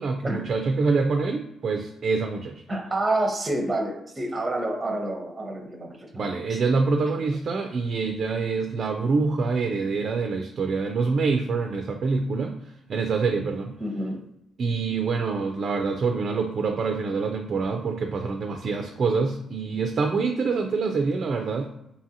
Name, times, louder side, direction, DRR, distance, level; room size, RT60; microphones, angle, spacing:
voice 1, 0.0-2.5 6.1-12.6 12.9-13.8 14.6-21.7, right 4 dB, 50° right, 4 dB, 0.3 m, -26 dB
voice 2, 2.7-6.6 13.8-14.3, right 1 dB, 20° right, 2 dB, 0.7 m, -28 dB
2.7 x 2.5 x 2.7 m, 0.83 s
cardioid pair, 90°, 0 cm